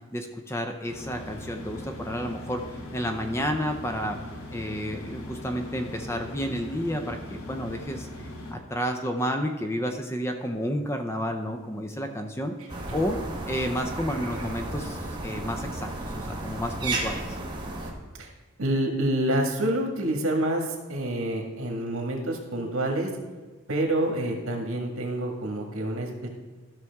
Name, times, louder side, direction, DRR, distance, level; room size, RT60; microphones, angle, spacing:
voice 1, 0.1-2.6 2.9-4.2 4.5-8.1 8.5-12.5 12.9-13.2 13.5-17.4, equal, 10° left, 5 dB, 0.5 m, -31 dB
sound 1, 0.9-8.5, left 1 dB, 80° left, 1.4 m, -40 dB
sound 2, 12.7-17.9, right 2 dB, 20° right, 1.1 m, -33 dB
voice 2, 18.6-23.1 23.7-26.3, right 1 dB, 75° right, 1 dB, 1.7 m, -27 dB
14.0 x 5.9 x 3.5 m, 1.3 s
head